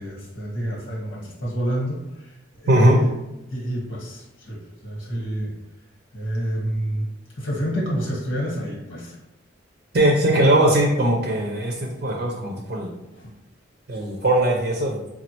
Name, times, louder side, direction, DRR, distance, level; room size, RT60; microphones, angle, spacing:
voice 1, 0.0-3.1 3.5-5.5 6.1-7.1 7.4-9.2 13.1-13.3, equal, 85° left, -3 dB, 1.4 m, -28 dB
voice 2, 2.7-3.0 9.9-12.9 13.9-15.0, right 1 dB, 50° right, -1 dB, 0.5 m, -19 dB
5.3 x 2.3 x 2.9 m, 0.97 s
head